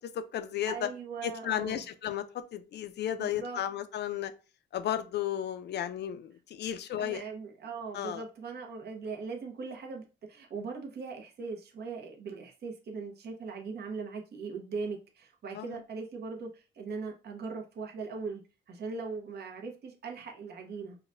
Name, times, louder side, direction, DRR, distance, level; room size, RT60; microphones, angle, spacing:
voice 1, 0.1-0.8 1.2-2.2 2.5-4.3 4.7-7.2 7.9-8.2 15.5-15.8, left 10 dB, 60° left, 0.5 m, -34 dB
voice 2, 0.7-1.8 3.1-3.6 7.0-18.4 18.7-21.0, right 4 dB, 55° right, 0.9 m, -40 dB
4.8 x 2.2 x 2.5 m
cardioid pair, 90°, 20 cm